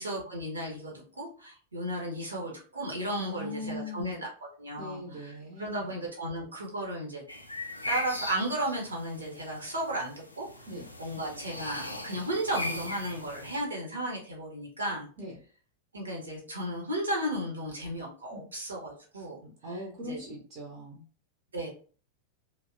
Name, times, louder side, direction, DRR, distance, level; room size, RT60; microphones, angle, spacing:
voice 1, 0.0-4.3 4.6-7.2 7.9-10.6 11.0-15.1 15.9-19.4 20.0-20.2 21.5-21.7, right 1 dB, 75° right, -1 dB, 0.8 m, -34 dB
voice 2, 3.2-4.2 4.8-5.9 10.7-10.9 15.2-15.3 18.3-18.5 19.4-21.0, left 1 dB, 40° right, -1 dB, 0.6 m, -40 dB
sound 1, 7.3-13.6, left 1 dB, 85° left, 0.3 m, -39 dB
2.7 x 2.1 x 2.4 m, 0.40 s
figure-of-eight pair, 90°, 0 cm